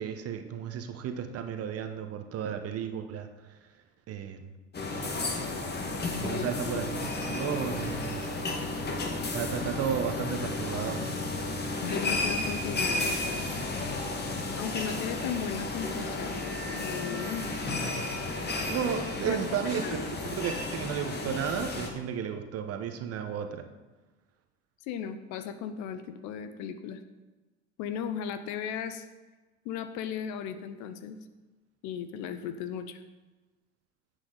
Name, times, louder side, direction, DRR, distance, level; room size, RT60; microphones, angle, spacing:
voice 1, 0.0-3.3 4.1-4.5 6.2-8.3 9.3-11.0 18.7-19.9 20.2-23.6, right 8 dB, 40° right, 7 dB, 1.1 m, -33 dB
sound 1, 4.7-21.9, left 2 dB, 30° left, 1.7 m, -33 dB
voice 2, 6.3-6.8 11.8-13.5 14.5-16.4 16.7-17.5 19.2-19.5 19.8-20.1 24.9-27.0 27.8-29.1 29.6-31.2 31.8-33.0, left 8 dB, 55° left, 10 dB, 0.9 m, -36 dB
9.8 x 8.2 x 4.0 m, 1.2 s
hypercardioid pair, 75°, 35 cm